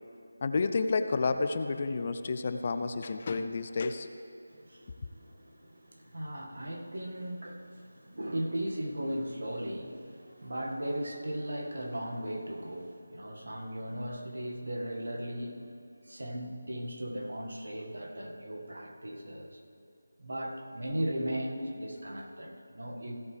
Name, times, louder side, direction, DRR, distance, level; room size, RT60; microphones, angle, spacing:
voice 1, 0.4-4.1, left 4 dB, 35° left, 9 dB, 0.4 m, -30 dB
voice 2, 4.5-15.6 16.0-19.6 20.2-23.2, right 1 dB, 75° right, 1 dB, 1.7 m, -37 dB
15.5 x 7.9 x 3.3 m, 2.4 s
figure-of-eight pair, 170°, 0 cm